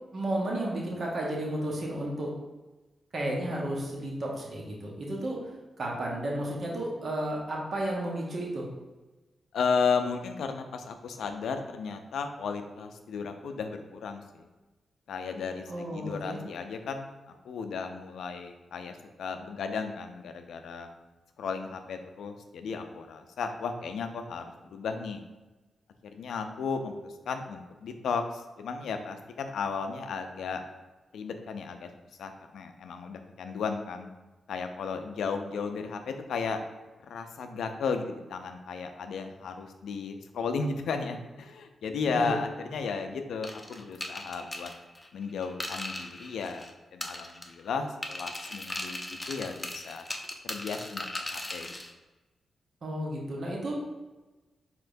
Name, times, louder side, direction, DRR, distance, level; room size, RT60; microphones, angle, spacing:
voice 1, 0.1-2.3 3.1-5.4 5.8-8.7 15.7-16.4 42.1-42.3 52.8-53.8, right 1 dB, 60° right, -2 dB, 1.1 m, -32 dB
voice 2, 9.5-14.5 15.1-20.9 21.4-24.4 24.7-25.2 26.1-30.6 31.1-31.9 32.2-34.1 34.5-36.6 37.1-44.7 45.1-50.0 50.4-51.1 51.3-51.8, left 5 dB, 85° left, 6 dB, 0.4 m, -34 dB
sound 1, 43.4-46.7 47.0-47.7 48.0-51.9, left 1 dB, 20° left, 0.6 m, -38 dB
4.5 x 3.6 x 2.6 m, 1.2 s
supercardioid pair, 45°, 0 cm